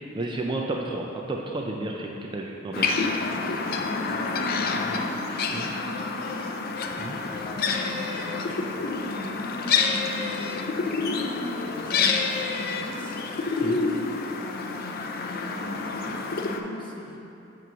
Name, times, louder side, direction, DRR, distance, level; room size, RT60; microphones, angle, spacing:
voice 1, 0.0-3.0 5.5-5.7 7.0-7.2 13.6-13.8, right 2 dB, 25° right, 0 dB, 0.3 m, -32 dB
sound 1, 2.7-16.6, left 4 dB, 45° left, 0.4 m, -28 dB
voice 2, 3.3-6.5 7.4-13.2 14.4-17.2, equal, 25° left, -2 dB, 0.8 m, -39 dB
8.0 x 3.0 x 5.8 m, 2.9 s
head